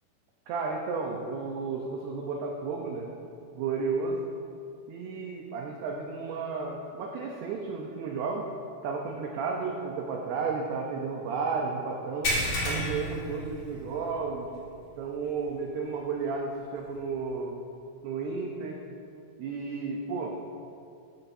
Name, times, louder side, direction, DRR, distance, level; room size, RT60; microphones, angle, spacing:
voice 1, 0.5-3.1 3.5-4.2 4.9-8.5 8.8-12.3 12.6-14.5 15.0-17.6 18.0-18.8 19.4-20.3, right 4 dB, 80° right, 0 dB, 2.4 m, -33 dB
sound 1, 12.2-14.1 14.5-14.7 15.2-15.3 16.9-17.0, equal, 45° left, 2.3 m, -30 dB
13.0 x 12.0 x 2.7 m, 2.5 s
omnidirectional pair, 5.7 m